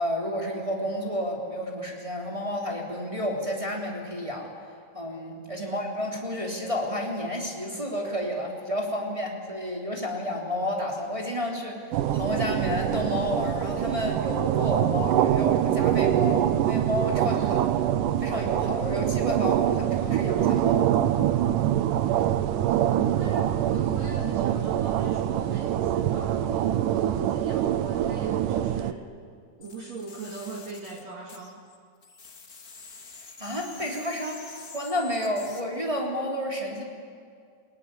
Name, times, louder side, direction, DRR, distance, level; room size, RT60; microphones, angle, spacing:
voice 1, 0.0-4.5 4.9-17.6 18.2-20.9 33.4-36.8, left 1 dB, 10° right, -1 dB, 2.8 m, -31 dB
sound 1, 11.9-28.9, right 11 dB, 85° right, 1.9 m, -24 dB
voice 2, 17.3-17.8 22.7-29.1 29.6-31.6, right 3 dB, 45° right, 0 dB, 2.7 m, -40 dB
sound 2, 29.6-35.6, left 4 dB, 50° left, 1.0 m, -46 dB
29.0 x 19.5 x 9.8 m, 2.2 s
omnidirectional pair, 4.9 m